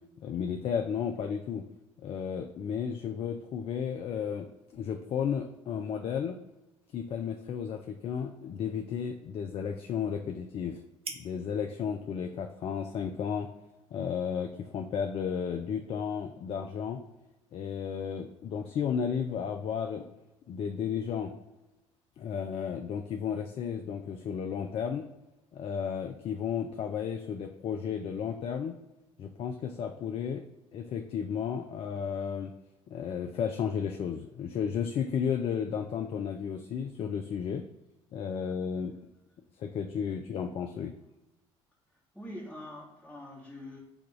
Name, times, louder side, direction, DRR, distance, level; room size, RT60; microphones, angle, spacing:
voice 1, 0.2-1.6 2.0-6.4 6.9-10.8 11.1-13.5 13.9-17.0 17.5-20.1 20.5-21.3 22.2-25.0 25.5-28.8 29.2-30.4 30.7-32.5 32.9-37.7 38.1-39.0 39.6-40.9, left 7 dB, 40° left, 4 dB, 0.4 m, -33 dB
sound 1, 6.7-14.4, right 4 dB, 40° right, 0.8 m, -52 dB
voice 2, 42.1-43.8, left 1 dB, 5° left, -5 dB, 1.0 m, -44 dB
6.9 x 2.4 x 3.1 m, 0.97 s
figure-of-eight pair, 50°, 16 cm